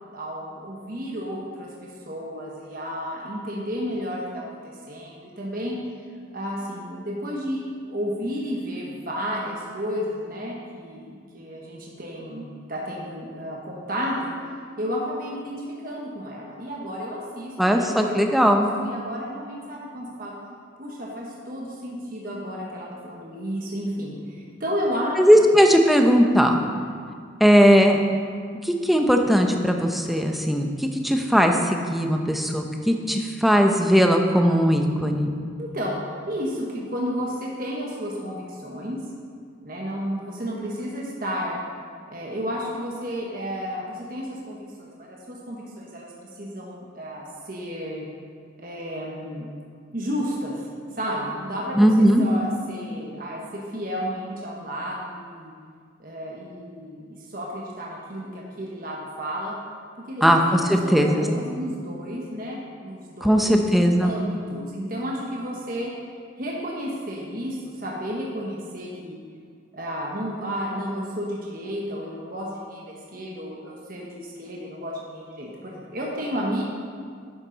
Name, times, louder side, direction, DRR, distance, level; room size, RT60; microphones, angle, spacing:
voice 1, 0.1-6.0 6.3-7.6 7.9-14.3 14.8-20.3 20.8-25.2 26.7-26.9 35.6-36.0 36.3-39.0 39.6-41.6 42.1-48.1 48.6-49.5 49.9-50.7 50.9-55.5 56.0-59.6 60.1-63.6 64.0-65.9 66.4-69.2 69.7-76.6, equal, 45° right, -3 dB, 1.3 m, -32 dB
voice 2, 17.6-18.7 25.2-26.6 27.4-28.0 28.6-35.3 51.8-52.2 60.2-61.2 63.2-64.1, equal, ahead, 3 dB, 0.7 m, -18 dB
11.5 x 10.0 x 4.1 m, 2.1 s
head